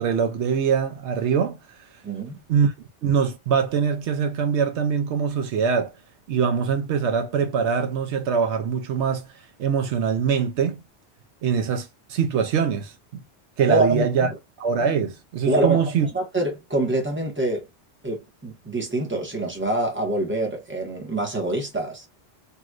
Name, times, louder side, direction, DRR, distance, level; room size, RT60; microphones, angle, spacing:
voice 1, 0.0-1.6 2.5-2.7 3.0-5.9 6.3-9.3 9.6-10.8 11.4-13.2 13.6-14.3 14.6-16.1, right 6 dB, 80° right, 0.9 m, -23 dB
voice 2, 2.0-2.4 13.7-14.3 15.5-15.8 16.1-17.7 18.0-22.1, right 2 dB, 10° right, 1.2 m, -25 dB
3.1 x 2.9 x 2.4 m
omnidirectional pair, 1.2 m